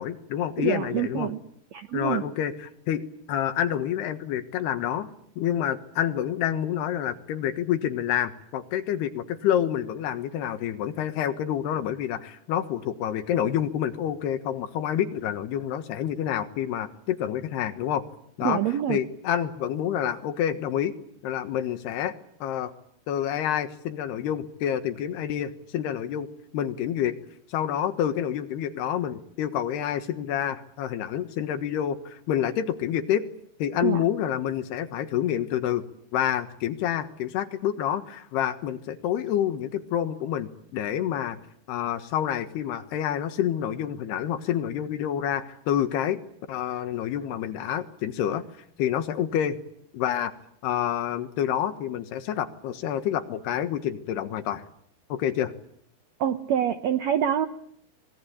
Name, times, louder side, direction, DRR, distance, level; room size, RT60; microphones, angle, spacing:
voice 1, 0.0-1.3 1.9-3.0 3.3-5.1 5.4-18.0 18.4-20.9 21.2-22.7 23.1-26.3 26.5-27.2 27.5-33.3 33.6-35.8 36.1-41.4 41.7-46.2 46.5-48.4 48.8-49.6 49.9-50.3 50.6-54.6 55.1-55.5, left 10 dB, 75° left, 10 dB, 3.4 m, -28 dB
voice 2, 0.6-1.4 1.7-2.2 18.4-19.0 33.8-34.0 56.2-57.5, right 10 dB, 90° right, 9 dB, 1.5 m, -26 dB
25.0 x 21.5 x 8.6 m, 0.68 s
omnidirectional pair, 4.8 m